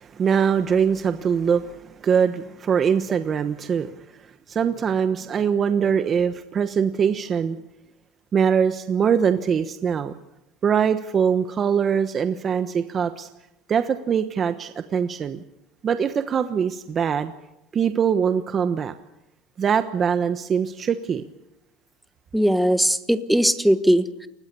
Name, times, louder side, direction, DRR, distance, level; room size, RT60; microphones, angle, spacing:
voice 1, 0.0-4.0 4.5-7.6 8.3-10.1 10.6-13.3 13.7-15.4 15.8-17.3 17.7-18.9 19.6-21.2, right 7 dB, 35° right, 10 dB, 1.1 m, -22 dB
voice 2, 22.3-24.3, equal, ahead, 11 dB, 1.4 m, -19 dB
28.5 x 21.0 x 7.0 m, 0.90 s
supercardioid pair, 120°, 0 cm